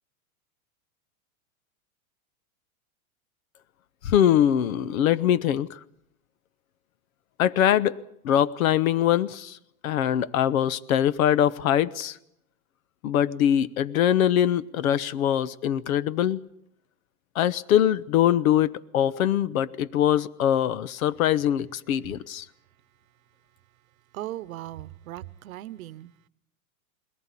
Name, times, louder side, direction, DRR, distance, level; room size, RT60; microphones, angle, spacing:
voice 1, 4.0-5.8 7.4-7.9 8.2-9.6 9.8-12.2 13.0-16.4 17.3-22.5, left 10 dB, 70° left, 1.0 m, -23 dB
voice 2, 24.1-26.1, right 14 dB, 70° right, 0.9 m, -38 dB
21.0 x 18.5 x 8.4 m
supercardioid pair, 165°, 43 cm